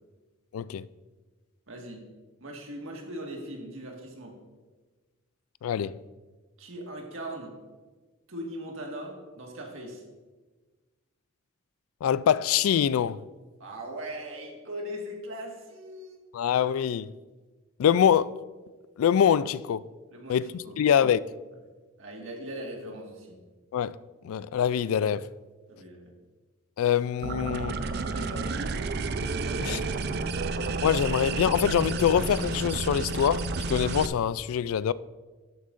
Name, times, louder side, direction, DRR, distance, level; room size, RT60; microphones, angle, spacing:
voice 1, 0.5-0.9 5.6-5.9 12.0-13.2 16.3-17.1 17.8-18.3 19.0-19.8 20.3-21.2 23.7-24.0 24.2-25.3 26.8-27.7 29.6-29.8 30.8-34.9, left 8 dB, 80° left, 0.3 m, -24 dB
voice 2, 1.7-2.0 2.4-4.4 6.6-7.5 8.3-10.0 13.6-16.3 20.1-20.8 22.0-23.4 25.7-26.1 27.4-28.7 29.4-29.7, right 1 dB, 65° right, 1.8 m, -40 dB
sound 1, 27.2-34.1, right 3 dB, 50° right, 0.4 m, -31 dB
12.5 x 9.2 x 2.5 m
head